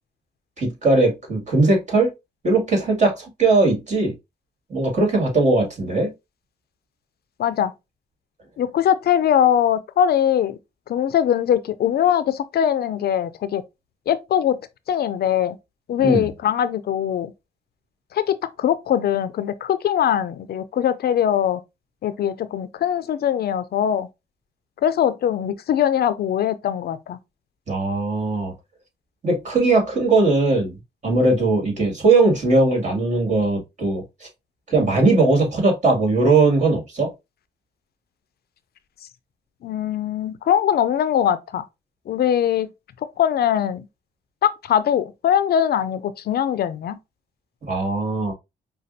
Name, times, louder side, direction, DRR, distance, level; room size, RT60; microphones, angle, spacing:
voice 1, 0.6-2.1 2.4-4.1 4.7-6.1 16.0-16.3 27.7-28.5 29.2-30.8 31.0-34.0 34.7-37.1 47.7-48.3, right 3 dB, 45° right, 2.2 m, -19 dB
voice 2, 7.4-7.7 8.6-10.6 10.9-13.6 14.1-14.6 14.9-15.6 15.9-17.3 18.1-21.6 22.0-24.1 24.8-27.2 39.6-41.6 42.1-42.7 43.2-43.9 44.4-47.0, left 9 dB, 70° left, 0.4 m, -21 dB
5.2 x 2.3 x 2.6 m
cardioid pair, 65°, 17 cm